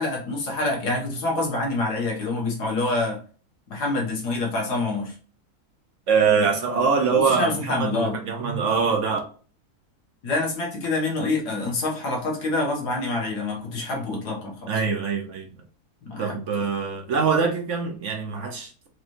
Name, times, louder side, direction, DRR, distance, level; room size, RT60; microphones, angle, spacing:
voice 1, 0.0-3.2 3.7-5.1 7.1-8.2 10.2-14.8 16.0-16.4, left 2 dB, 85° left, 1.9 m, -26 dB
voice 2, 6.1-9.2 14.7-15.5 16.2-18.9, right 5 dB, 60° right, 1.0 m, -23 dB
4.9 x 3.2 x 2.6 m
omnidirectional pair, 1.7 m